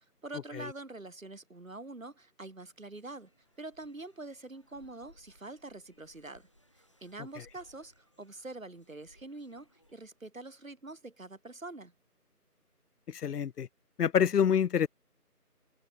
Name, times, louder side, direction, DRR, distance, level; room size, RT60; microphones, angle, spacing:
voice 1, 0.0-3.3 3.6-6.5 7.0-11.9, right 2 dB, 55° right, 1.5 m, -45 dB
sound 1, 3.0-10.2, equal, 20° left, 3.3 m, -65 dB
voice 2, 13.1-13.7 14.0-14.9, left 8 dB, 75° left, 0.5 m, -27 dB
open air
figure-of-eight pair, 175°, 47 cm